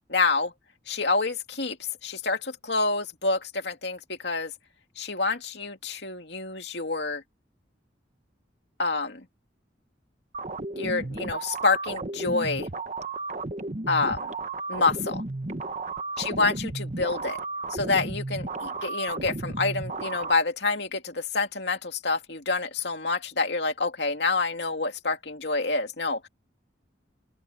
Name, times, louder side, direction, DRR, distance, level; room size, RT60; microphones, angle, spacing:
voice 1, 0.1-0.5 0.9-1.8 2.0-4.5 5.0-7.2 8.8-9.3 10.7-12.7 13.9-14.3 14.7-15.2 16.2-17.4 17.7-26.3, left 3 dB, 65° left, 2.5 m, -27 dB
sound 1, 10.3-20.3, right 2 dB, 40° right, 1.2 m, -33 dB
open air
head